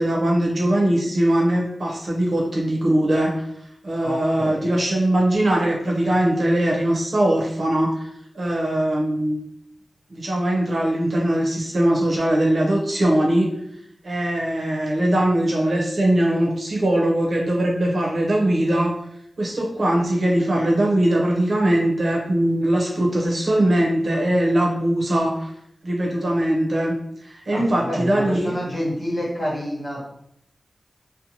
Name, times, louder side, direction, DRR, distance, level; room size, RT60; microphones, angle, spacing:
voice 1, 0.0-3.4 3.8-8.1 8.3-9.4 10.1-13.5 14.0-19.0 19.4-25.5 25.8-27.0 27.2-28.5, right 1 dB, 70° right, -2 dB, 0.7 m, -21 dB
voice 2, 4.0-4.7 27.5-30.0, equal, 45° left, -4 dB, 1.1 m, -28 dB
2.7 x 2.1 x 2.9 m, 0.73 s
cardioid pair, 55°, 0 cm